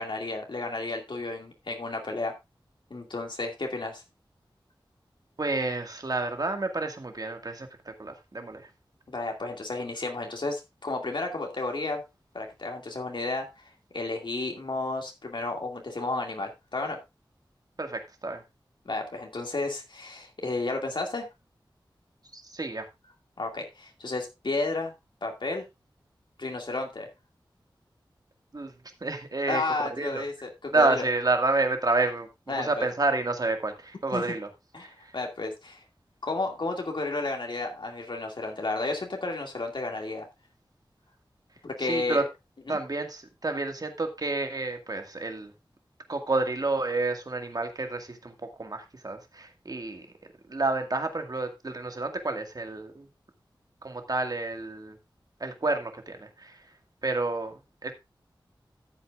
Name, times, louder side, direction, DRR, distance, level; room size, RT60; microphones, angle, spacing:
voice 1, 0.0-2.3 2.9-4.0 9.1-12.0 12.3-17.0 18.9-21.3 23.4-24.9 25.2-25.6 26.4-27.1 29.5-31.0 32.5-32.9 34.1-34.2 34.7-35.8 36.2-40.3 41.6-42.2 42.7-42.8, left 2 dB, 65° left, 2 dB, 2.3 m, -32 dB
voice 2, 5.4-8.6 17.8-18.4 22.3-22.9 28.5-28.7 29.0-30.2 30.7-32.3 32.6-34.5 41.9-42.2 42.7-45.5 46.1-48.3 48.6-50.0 50.5-53.1 53.8-55.0 55.4-56.5 57.0-57.5 57.8-57.9, right 2 dB, 50° right, 5 dB, 2.0 m, -29 dB
13.5 x 8.3 x 2.5 m, 0.23 s
wide cardioid pair, 75°, 9 cm